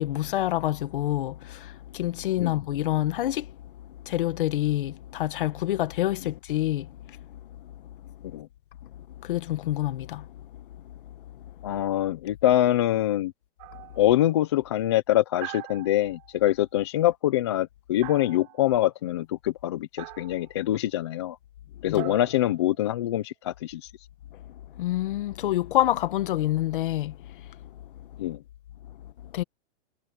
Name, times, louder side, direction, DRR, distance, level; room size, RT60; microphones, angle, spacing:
voice 1, 0.0-3.5 4.0-7.9 9.2-10.9 11.3-11.8 21.9-22.1 24.4-27.6 28.1-28.3 29.2-29.4, left 14 dB, 50° left, 1.6 m, -28 dB
voice 2, 11.6-13.3 14.0-21.4 21.8-23.9 28.2-28.4, left 13 dB, 25° left, 0.5 m, -24 dB
sound 1, 13.6-14.1 15.4-16.3 18.0-18.8 20.0-20.5 22.0-23.2, right 24 dB, 35° right, 4.4 m, -42 dB
hypercardioid pair, 175°, 35 cm